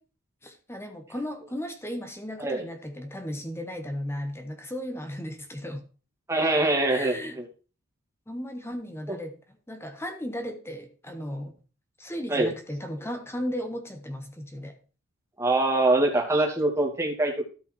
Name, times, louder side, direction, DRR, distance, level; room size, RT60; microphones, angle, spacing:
voice 1, 0.4-5.8 6.9-7.4 8.3-9.3 9.7-11.5 12.0-14.7, equal, 10° left, 1.2 m, -35 dB
voice 2, 6.3-7.5 12.3-12.5 15.4-17.4, right 2 dB, 15° right, 2.2 m, -24 dB
13.5 x 5.5 x 4.5 m
head